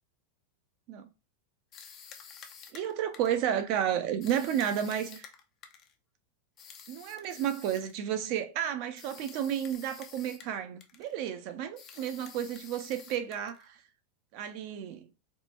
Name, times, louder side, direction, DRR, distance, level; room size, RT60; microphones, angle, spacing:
sound 1, 1.7-3.5 4.2-5.9 6.6-8.0 9.0-10.6 10.8-11.1 11.8-13.7, left 7 dB, 40° left, 0.6 m, -50 dB
voice 1, 2.7-5.3 6.9-13.8 14.3-15.1, right 9 dB, 55° right, 0.6 m, -32 dB
3.7 x 2.0 x 2.4 m
hypercardioid pair, 120°, 0 cm